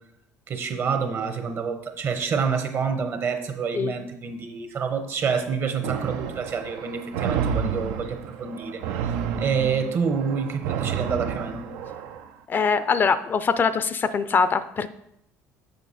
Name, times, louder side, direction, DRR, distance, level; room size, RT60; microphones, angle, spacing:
voice 1, 0.5-8.8 9.4-11.6, right 6 dB, 50° right, 7 dB, 1.1 m, -27 dB
sound 1, 5.8-12.3, right 7 dB, 85° right, 0.5 m, -30 dB
voice 2, 12.5-14.9, left 5 dB, 35° left, 13 dB, 0.4 m, -23 dB
6.9 x 5.5 x 4.1 m, 0.77 s
supercardioid pair, 90°, 6 cm